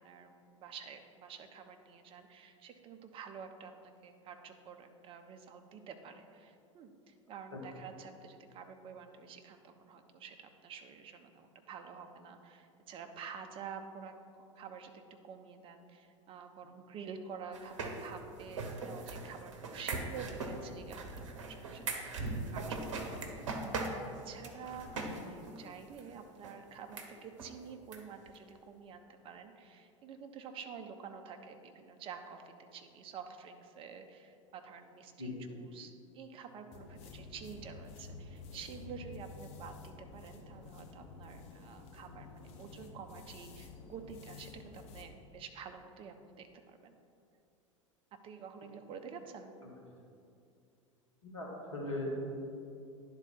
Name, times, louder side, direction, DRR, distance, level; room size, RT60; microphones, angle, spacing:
voice 1, 0.0-14.1 14.6-23.2 24.1-47.0 48.2-49.5, right 6 dB, 35° right, 6 dB, 0.7 m, -49 dB
sound 1, 17.5-25.2 25.5-25.6 26.0-26.1 26.4-26.5 26.9-27.1 27.4-27.5 27.9-28.0 28.3-28.4, right 3 dB, 65° right, 0.9 m, -40 dB
sound 2, 36.7-45.1, left 4 dB, 40° left, 0.8 m, -51 dB
voice 2, 51.2-52.2, left 1 dB, 75° left, -2 dB, 1.4 m, -38 dB
10.5 x 3.8 x 4.3 m, 2.5 s
figure-of-eight pair, 80°, 16 cm